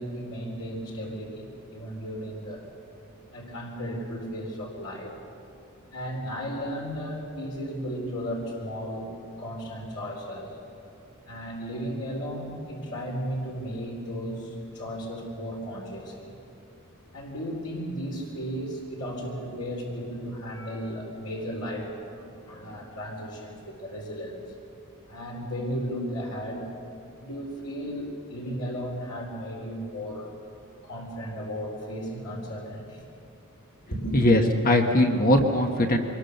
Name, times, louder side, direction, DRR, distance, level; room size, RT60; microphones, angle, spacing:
voice 1, 0.0-2.7 3.3-5.1 5.9-9.1 9.4-10.6 11.3-16.4 17.1-24.5 25.1-26.7 27.2-30.3 30.8-33.1 33.9-34.3, equal, 85° left, -2 dB, 4.2 m, -35 dB
voice 2, 34.1-36.0, left 1 dB, 40° left, 4 dB, 1.4 m, -20 dB
24.0 x 21.0 x 6.7 m, 2.8 s
head